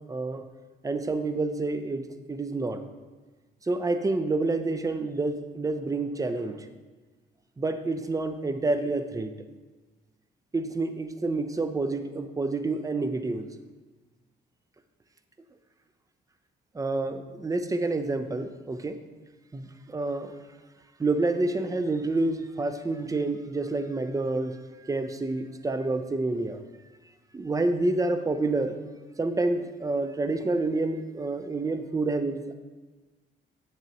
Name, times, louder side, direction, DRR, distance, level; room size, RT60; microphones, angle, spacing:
voice 1, 0.1-0.4 0.8-2.8 3.7-6.6 7.6-9.4 10.5-13.5 16.8-19.0 19.5-19.6 19.9-20.3 21.0-24.6 24.8-26.6 27.3-28.7 29.2-32.5, right 2 dB, 15° right, 9 dB, 0.6 m, -28 dB
9.1 x 6.8 x 3.0 m, 1.3 s
cardioid pair, 90°, 20 cm